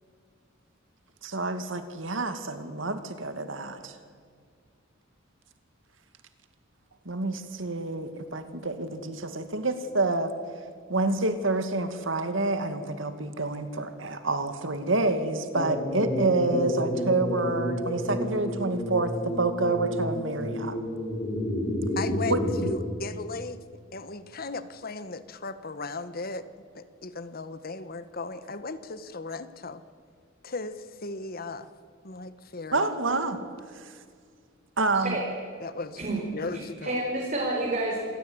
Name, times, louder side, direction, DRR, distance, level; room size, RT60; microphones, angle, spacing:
voice 1, 1.2-3.9 7.1-10.3 10.9-20.7 22.3-22.4 32.7-33.4 33.8-33.9 34.8-35.2, right 2 dB, 65° right, 9 dB, 2.3 m, -28 dB
sound 1, 15.5-22.6, equal, 25° left, 5.4 m, -30 dB
voice 2, 22.0-23.6 23.9-26.4 26.7-29.8 30.4-31.7 32.0-32.9 35.6-36.0 36.3-37.2, left 3 dB, 45° left, 13 dB, 1.3 m, -36 dB
voice 3, 36.5-38.0, right 2 dB, 40° right, -2 dB, 4.7 m, -29 dB
27.0 x 17.0 x 9.7 m, 2.1 s
head